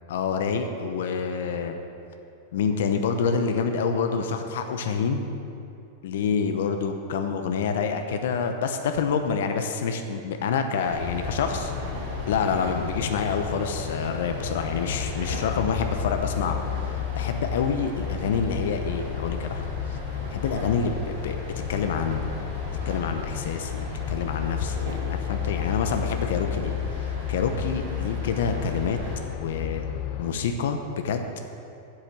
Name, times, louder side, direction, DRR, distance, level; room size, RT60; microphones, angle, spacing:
voice 1, 0.1-1.8 2.5-5.3 6.0-11.7 12.3-19.6 20.3-21.4 21.7-22.3 22.8-29.0 29.4-29.9 30.2-31.3, left 6 dB, 75° left, 6 dB, 0.8 m, -27 dB
sound 1, 10.8-29.2, equal, 65° right, 2.3 m, -38 dB
sound 2, 11.0-30.3, left 10 dB, 40° left, 0.5 m, -32 dB
8.1 x 7.0 x 7.5 m, 2.7 s
supercardioid pair, 165°, 0 cm